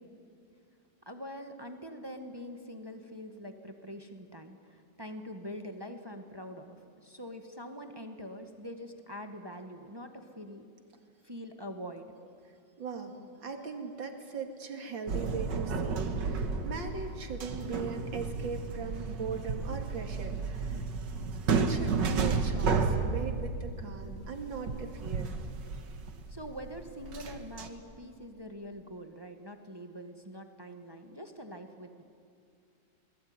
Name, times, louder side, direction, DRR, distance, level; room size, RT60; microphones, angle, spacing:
voice 1, 1.0-10.7 11.2-12.1 26.3-32.0, equal, 15° right, 5 dB, 1.5 m, -44 dB
voice 2, 12.8-20.8 21.5-25.3, right 4 dB, 85° right, 5 dB, 3.0 m, -39 dB
sound 1, 15.1-27.7, right 4 dB, 70° right, 2.1 m, -32 dB
27.5 x 20.5 x 9.6 m, 2.3 s
omnidirectional pair, 2.0 m